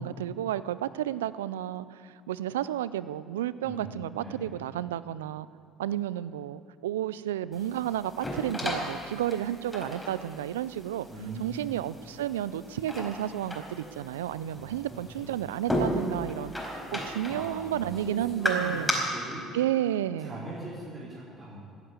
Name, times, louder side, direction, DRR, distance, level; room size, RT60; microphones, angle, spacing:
voice 1, 0.0-5.5 5.8-11.1 11.4-18.9 19.5-20.5, right 12 dB, 85° right, 16 dB, 0.4 m, -32 dB
voice 2, 4.1-4.5 11.1-11.5 14.5-15.2 17.2-18.9 19.1-19.4 20.2-21.6, right 2 dB, 40° right, -7 dB, 4.8 m, -41 dB
sound 1, 7.5-18.9, equal, 5° left, 4.6 m, -35 dB
16.0 x 8.9 x 8.6 m, 2.3 s
hypercardioid pair, 60°, 0 cm